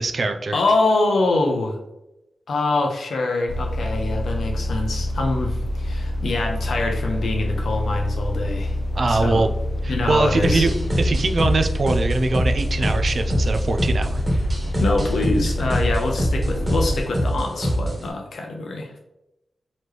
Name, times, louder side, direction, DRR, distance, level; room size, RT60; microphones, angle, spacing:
voice 1, 0.0-0.6 8.9-9.5 9.8-10.7 11.0-14.2, right 3 dB, 55° right, 7 dB, 0.4 m, -22 dB
voice 2, 0.5-1.8 2.5-8.8 9.1-9.4 9.9-10.7 14.7-19.0, left 2 dB, 90° left, 2 dB, 0.8 m, -24 dB
sound 1, 3.5-17.0, left 1 dB, 50° left, 0.3 m, -27 dB
sound 2, 10.4-18.1, equal, 15° right, 1.3 m, -24 dB
4.1 x 3.0 x 3.2 m, 0.91 s
wide cardioid pair, 130°, 0 cm